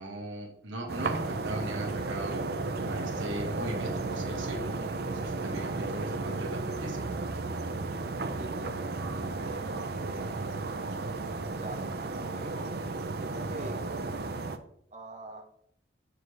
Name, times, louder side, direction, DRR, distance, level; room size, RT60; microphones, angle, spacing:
voice 1, 0.0-2.4 2.9-7.1, right 1 dB, 85° right, 1 dB, 1.6 m, -38 dB
sound 1, 0.9-14.6, right 3 dB, 55° right, 0.6 m, -34 dB
voice 2, 8.4-8.7 9.1-10.6 10.9-11.0 11.5-11.9 12.1-12.6 13.2-13.8 14.9-15.4, right 1 dB, 35° right, -1 dB, 1.2 m, -44 dB
6.7 x 6.6 x 3.3 m, 0.66 s
head